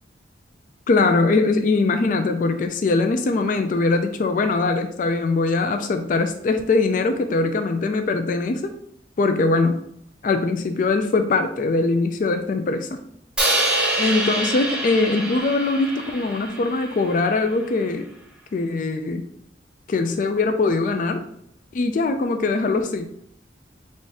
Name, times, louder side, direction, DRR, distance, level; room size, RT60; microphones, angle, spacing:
voice 1, 0.9-8.7 9.2-9.8 10.2-13.0 14.0-18.1 18.5-19.3 19.9-21.2 21.7-23.1, left 3 dB, 45° left, 7 dB, 0.3 m, -21 dB
Crash cymbal, 13.4-17.6, right 1 dB, 5° right, 0.7 m, -26 dB
4.0 x 2.5 x 3.5 m, 0.71 s
head